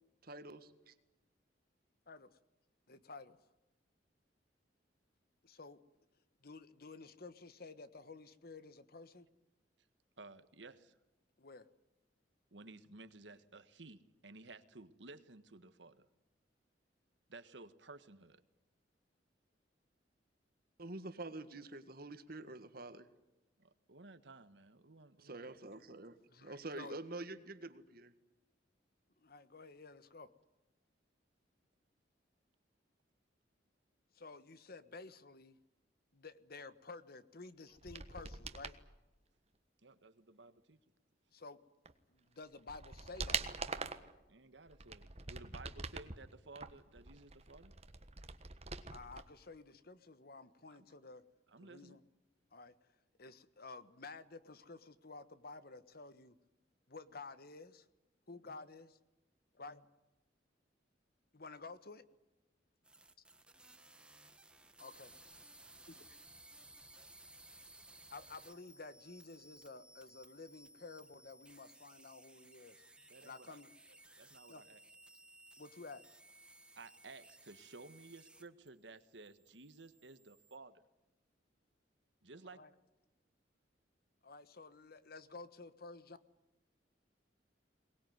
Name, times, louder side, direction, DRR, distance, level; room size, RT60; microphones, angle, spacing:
voice 1, 0.2-0.9 20.8-23.1 25.2-28.1, right 2 dB, 55° right, 11 dB, 1.8 m, -47 dB
voice 2, 2.9-3.4 5.4-5.8 6.4-9.3 11.4-11.7 26.3-27.0 29.2-30.3 34.1-35.6 36.1-38.8 41.3-41.6 42.1-43.7 48.9-51.2 51.6-52.0 52.5-52.7 53.2-56.3 56.9-57.9 58.3-59.0 59.6-59.9 61.3-62.0 64.8-65.1 65.9-66.0 68.1-72.8 73.2-73.7 74.5-74.6 75.6-76.0 82.4-82.7 84.2-86.2, left 3 dB, 55° left, 13 dB, 1.3 m, -52 dB
voice 3, 10.2-11.0 12.5-16.1 17.3-18.4 23.6-25.7 39.8-40.8 44.3-47.7 50.7-50.8 51.5-52.0 73.1-73.6 74.2-74.8 76.7-80.8 82.2-82.6, right 3 dB, 75° right, 11 dB, 1.5 m, -55 dB
sound 1, 37.8-38.8 41.9-42.0 42.4-44.1 44.7-46.2 46.6-49.2 49.5-49.6, right 5 dB, 35° right, 1.4 m, -44 dB
sound 2, 62.8-78.7 79.0-80.6, right 2 dB, 5° right, 1.5 m, -60 dB
23.0 x 19.5 x 9.5 m, 1.0 s
head